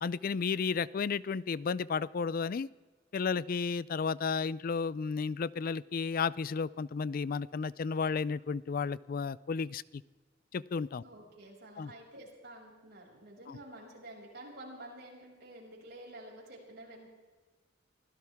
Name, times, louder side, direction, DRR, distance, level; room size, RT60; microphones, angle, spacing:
voice 1, 0.0-2.7 3.1-9.8 10.5-11.0 11.8-11.9 13.5-13.6, left 5 dB, 50° left, 20 dB, 0.4 m, -33 dB
voice 2, 11.0-17.1, right 1 dB, 60° right, -3 dB, 6.4 m, -50 dB
24.5 x 16.0 x 3.6 m, 1.3 s
head